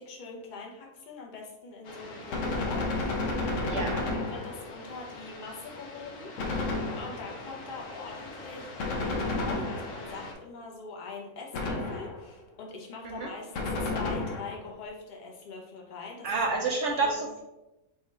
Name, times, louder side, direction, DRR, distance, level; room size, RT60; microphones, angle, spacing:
voice 1, 0.0-3.4 4.1-16.3 16.8-17.3, left 3 dB, 40° left, -1 dB, 0.8 m, -43 dB
sound 1, 1.8-10.3, left 2 dB, 80° left, 1.3 m, -44 dB
Gunshot gunfire, 2.3-4.8 6.4-7.4 8.8-10.2 11.5-12.3 13.5-14.7, left 2 dB, 65° left, 0.9 m, -31 dB
voice 2, 3.6-4.1 13.0-13.3 16.2-17.4, right 3 dB, 65° right, 0 dB, 0.8 m, -29 dB
4.7 x 2.4 x 4.2 m, 0.97 s
omnidirectional pair, 1.6 m